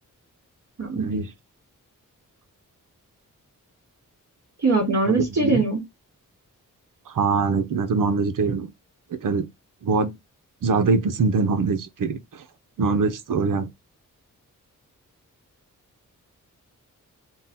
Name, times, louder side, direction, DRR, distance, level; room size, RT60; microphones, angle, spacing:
voice 1, 0.9-1.3 5.0-5.6 7.1-8.7 9.1-9.5 9.8-10.1 10.6-12.4 12.8-13.7, right 4 dB, 75° right, 0.8 m, -23 dB
voice 2, 4.6-5.8, right 3 dB, 55° right, 2.2 m, -21 dB
3.8 x 2.2 x 4.1 m
wide cardioid pair, 85°, 33 cm